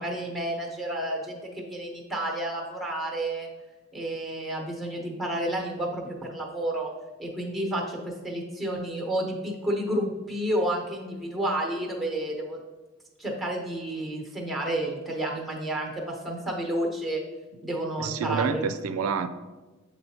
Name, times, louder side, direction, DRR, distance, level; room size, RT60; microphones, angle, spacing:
voice 1, 0.0-3.5 3.9-6.9 7.2-12.6 13.2-17.2 17.6-18.6, right 1 dB, ahead, -1 dB, 0.9 m, -30 dB
voice 2, 18.0-19.3, right 6 dB, 85° right, 11 dB, 0.4 m, -28 dB
8.1 x 4.1 x 2.8 m, 1.2 s
head